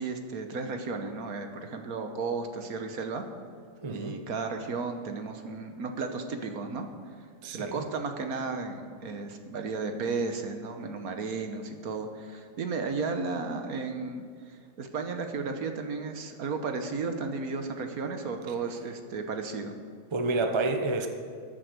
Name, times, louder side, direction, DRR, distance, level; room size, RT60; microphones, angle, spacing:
voice 1, 0.0-3.2 3.9-6.9 7.5-19.8, right 4 dB, 60° right, 6 dB, 1.4 m, -34 dB
voice 2, 3.8-4.2 7.4-7.8 20.1-21.1, right 3 dB, 25° right, 6 dB, 0.6 m, -29 dB
14.0 x 8.1 x 6.6 m, 2.1 s
omnidirectional pair, 1.8 m